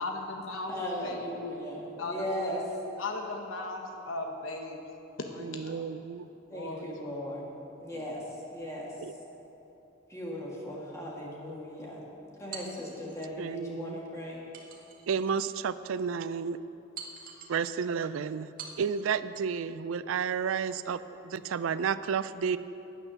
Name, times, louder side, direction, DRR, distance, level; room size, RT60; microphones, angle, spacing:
voice 1, 0.0-1.3 2.0-2.6 3.0-4.8 5.2-5.9 6.5-6.9, left 2 dB, 90° left, 3 dB, 0.9 m, -37 dB
voice 2, 0.7-2.7 6.5-7.5 7.8-8.2 8.5-8.9 10.1-12.0 12.4-14.4, equal, 15° left, -4 dB, 2.0 m, -37 dB
voice 3, 5.4-6.3 7.8-7.9 9.0-9.1 13.4-14.0 15.1-16.6 17.5-18.5 18.8-22.6, right 6 dB, 85° right, 15 dB, 0.4 m, -31 dB
sound 1, 12.5-13.3 14.5-15.4 15.9-16.0 17.0-17.6 18.6-19.1, right 5 dB, 45° right, 1.2 m, -45 dB
9.8 x 8.9 x 6.3 m, 3.0 s
head